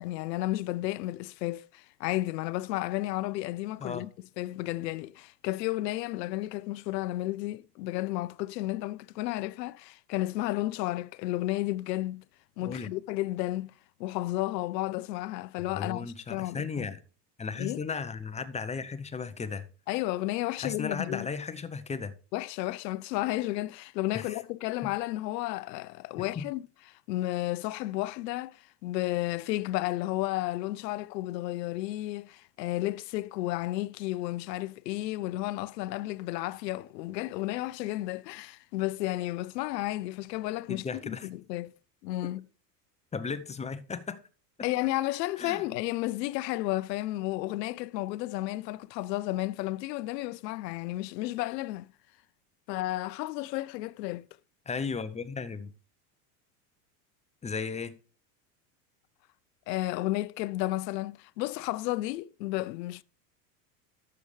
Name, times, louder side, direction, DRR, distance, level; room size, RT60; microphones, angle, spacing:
voice 1, 0.0-4.1 4.4-12.2 12.6-13.7 14.0-16.9 17.6-17.8 19.9-21.3 22.3-26.6 27.1-41.7 42.0-42.4 44.6-51.9 52.7-54.3 59.7-63.0, left 17 dB, 85° left, 0.6 m, -32 dB
voice 2, 15.7-17.0 17.4-19.6 20.6-22.1 24.1-24.4 24.8-24.9 26.4-26.5 40.7-41.3 43.1-44.2 45.4-45.6 54.7-55.7 57.4-57.9, left 5 dB, 15° left, 0.7 m, -35 dB
12.0 x 6.7 x 3.2 m
supercardioid pair, 105°, 49 cm